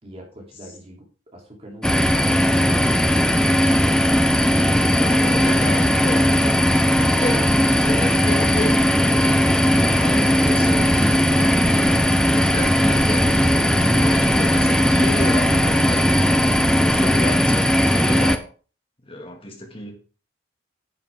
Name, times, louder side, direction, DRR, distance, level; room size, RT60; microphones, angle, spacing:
voice 1, 0.0-1.1 1.3-3.1, equal, 30° right, -1 dB, 3.0 m, -42 dB
sound 1, 1.8-18.4, equal, 5° left, 0.5 m, -18 dB
voice 2, 4.3-6.3 6.9-10.9 11.3-16.2 16.8-18.5 19.0-20.0, left 1 dB, 30° left, 2 dB, 2.0 m, -31 dB
sound 2, 10.4-16.7, right 3 dB, 60° right, 0.6 m, -34 dB
10.0 x 7.3 x 3.6 m, 0.36 s
head